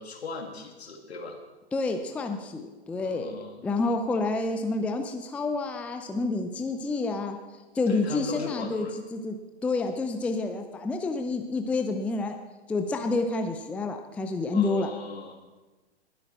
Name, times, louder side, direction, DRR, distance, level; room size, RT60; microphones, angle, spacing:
voice 1, 0.0-1.4 3.0-3.7 7.9-8.9 14.5-15.4, left 3 dB, 70° left, 3 dB, 2.2 m, -38 dB
voice 2, 1.7-7.4 7.7-12.4 12.7-14.9, left 3 dB, 5° left, 6 dB, 0.5 m, -29 dB
20.5 x 8.0 x 4.4 m, 1.2 s
figure-of-eight pair, 110°, 33 cm